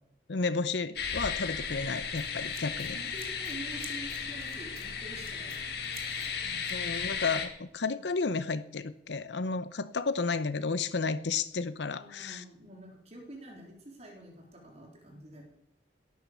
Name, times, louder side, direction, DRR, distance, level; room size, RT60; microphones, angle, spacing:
voice 1, 0.3-3.0 6.7-12.4, left 4 dB, 85° left, 12 dB, 0.8 m, -32 dB
sound 1, 1.0-7.5, left 6 dB, 65° left, 2.2 m, -35 dB
Scissors, 1.7-7.1, right 2 dB, 55° right, 2.7 m, -51 dB
voice 2, 2.9-5.8 6.0-6.6 12.0-15.4, right 1 dB, 40° right, 0 dB, 3.9 m, -47 dB
18.5 x 9.4 x 6.9 m, 0.79 s
head